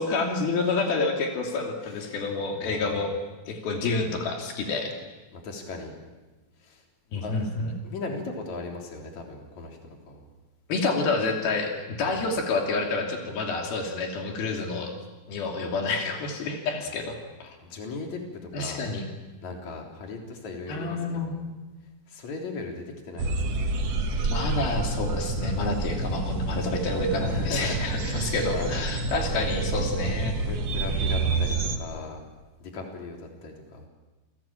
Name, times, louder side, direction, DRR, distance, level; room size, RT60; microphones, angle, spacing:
voice 1, 0.0-3.1 3.5-4.9 7.1-7.7 10.7-14.9 15.3-17.6 18.5-19.1 20.7-21.3 24.3-30.4, left 3 dB, 85° left, 2 dB, 4.7 m, -28 dB
voice 2, 2.6-3.0 5.3-5.9 6.6-6.8 7.1-7.4 7.8-10.3 12.0-12.4 17.6-18.8 19.4-21.5 22.1-23.8 27.3-28.9 30.4-32.2 32.6-33.8, left 3 dB, 50° left, 1 dB, 4.8 m, -38 dB
sound 1, 23.2-31.8, right 3 dB, 55° right, 2.3 m, -28 dB
28.5 x 20.0 x 8.9 m, 1.2 s
omnidirectional pair, 4.2 m